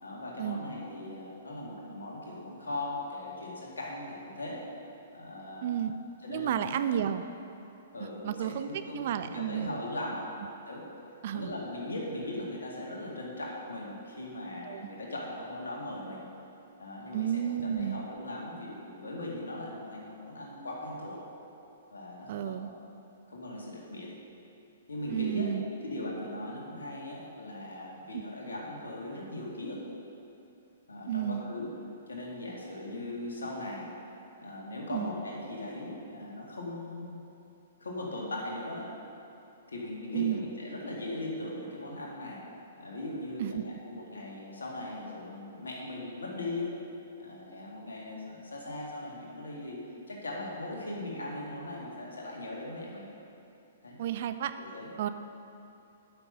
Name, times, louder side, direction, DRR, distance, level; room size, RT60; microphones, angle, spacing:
voice 1, 0.0-4.6 5.1-5.8 6.2-7.0 7.9-10.3 10.7-10.9 11.3-16.3 16.8-21.2 21.9-22.6 23.3-24.1 24.9-29.8 30.9-31.7 32.1-33.9 34.4-37.2 37.8-38.9 39.7-42.5 42.8-46.8 47.2-53.1 53.8-54.0 54.6-54.9, left 1 dB, 65° left, -3 dB, 2.1 m, -39 dB
voice 2, 5.6-5.9 6.3-7.2 8.2-8.7 8.9-9.7 11.2-11.5 14.7-14.9 17.1-18.0 22.3-22.7 25.1-25.6 31.1-31.5 34.9-35.1 40.1-40.4 43.4-43.6 54.0-54.5 55.0-55.1, right 10 dB, 45° right, 10 dB, 0.4 m, -31 dB
8.6 x 6.0 x 6.6 m, 2.8 s
figure-of-eight pair, 115°, 0 cm